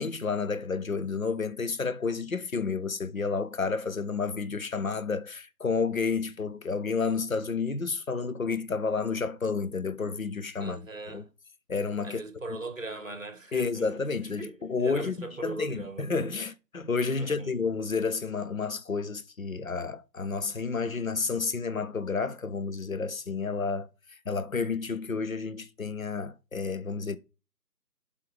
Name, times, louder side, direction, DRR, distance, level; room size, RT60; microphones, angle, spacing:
voice 1, 0.0-10.8 11.1-11.2 11.7-12.2 13.5-23.9 24.3-27.2, left 4 dB, 55° left, 0.7 m, -30 dB
voice 2, 10.6-11.3 12.0-14.1 14.4-16.1 17.2-17.5, right 2 dB, 50° right, 1.3 m, -39 dB
7.8 x 3.7 x 5.0 m
figure-of-eight pair, 170°, 49 cm